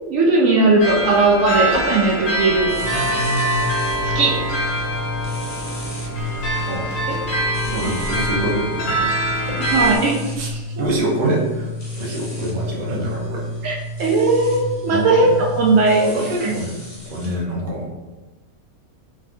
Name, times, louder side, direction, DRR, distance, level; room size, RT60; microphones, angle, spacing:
voice 1, 0.0-2.7 4.0-4.4 9.7-10.9 11.2-11.3 13.6-16.0 16.4-16.5, right 3 dB, 70° right, -1 dB, 0.9 m, -18 dB
sound 1, 0.8-10.0, right 1 dB, 65° left, 1.2 m, -24 dB
sound 2, 2.6-17.3, left 1 dB, 25° left, 0.3 m, -30 dB
voice 2, 7.6-9.1 9.5-9.6 10.4-10.5 10.8-13.5 14.9-15.4 15.9-16.7 17.1-17.9, right 1 dB, 45° right, -2 dB, 0.7 m, -26 dB
3.6 x 3.1 x 2.5 m, 1.2 s
omnidirectional pair, 1.5 m